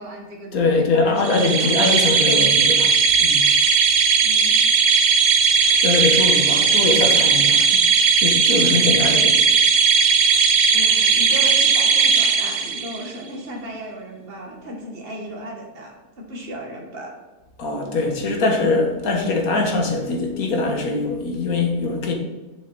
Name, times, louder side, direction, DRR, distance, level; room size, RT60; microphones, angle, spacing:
voice 1, 0.0-1.7 4.2-4.6 6.4-6.7 9.0-9.2 10.7-17.1, right 1 dB, 40° right, -1 dB, 1.8 m, -35 dB
voice 2, 0.5-2.9 3.2-3.7 5.6-9.4 10.3-10.4 17.6-22.1, left 3 dB, 70° left, 2 dB, 1.8 m, -22 dB
sound 1, 1.2-13.1, right 5 dB, 85° right, 1.3 m, -17 dB
7.1 x 7.1 x 4.0 m, 1.2 s
omnidirectional pair, 1.6 m